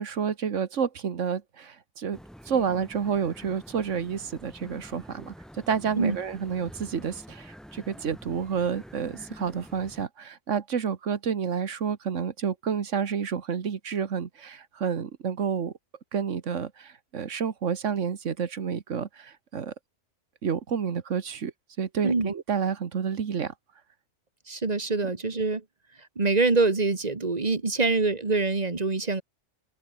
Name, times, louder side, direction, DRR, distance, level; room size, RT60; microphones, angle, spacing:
voice 1, 0.0-2.2 2.5-15.7 16.1-19.7 20.4-21.5 21.8-23.5, right 7 dB, 85° right, 1.7 m, -29 dB
sound 1, 2.1-10.1, equal, ahead, 4.5 m, -47 dB
voice 2, 22.0-22.3 24.5-25.6 26.2-29.2, right 3 dB, 35° right, 1.8 m, -25 dB
open air
omnidirectional pair, 1.2 m